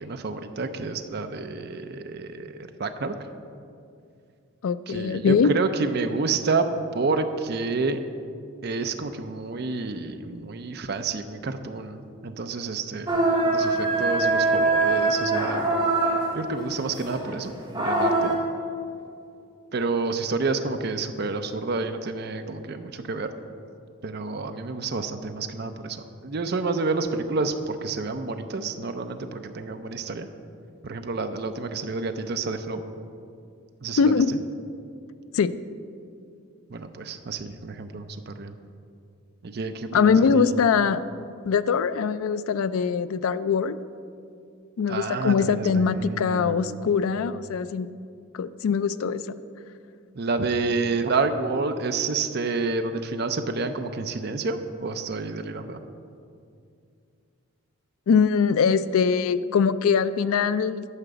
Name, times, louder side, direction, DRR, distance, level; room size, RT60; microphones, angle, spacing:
voice 1, 0.0-2.5 2.8-3.1 4.9-6.7 6.9-8.0 8.6-15.7 16.3-18.3 19.7-23.3 24.0-30.3 30.8-32.8 33.8-34.4 36.7-38.5 39.4-40.5 44.9-46.8 50.2-55.8, right 3 dB, 50° right, 7 dB, 0.5 m, -29 dB
voice 2, 4.6-5.5 34.0-34.3 35.3-35.5 39.9-41.0 41.5-43.8 44.8-47.9 48.3-49.3 58.1-60.9, left 6 dB, 75° left, 14 dB, 0.4 m, -22 dB
sound 1, 13.1-18.4, right 2 dB, 20° right, 1.6 m, -23 dB
9.9 x 5.0 x 6.8 m, 2.4 s
head